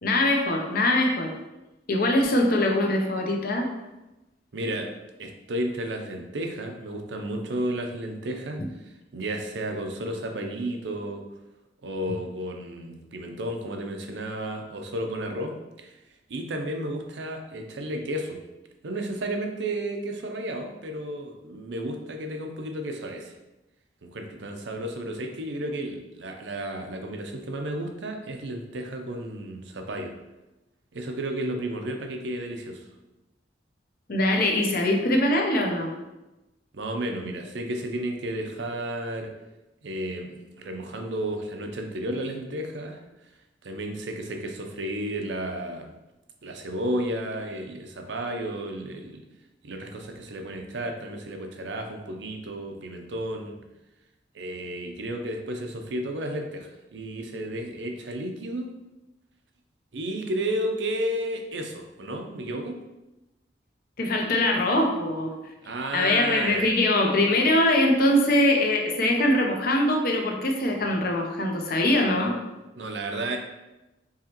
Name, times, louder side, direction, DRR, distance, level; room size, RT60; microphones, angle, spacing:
voice 1, 0.0-1.3 1.9-3.7 8.6-8.7 34.1-35.9 64.0-65.3 65.9-72.4, left 1 dB, 55° left, 2 dB, 0.7 m, -22 dB
voice 2, 4.5-4.9 5.2-8.6 9.1-11.2 11.8-15.9 16.3-18.4 18.8-23.4 24.1-30.1 30.9-32.9 36.7-39.3 39.8-43.0 43.6-45.9 46.4-49.2 49.6-53.5 54.3-58.7 59.9-62.8 65.6-66.7 72.8-73.4, right 1 dB, 75° right, 4 dB, 0.6 m, -32 dB
4.8 x 3.0 x 2.9 m, 1.0 s
head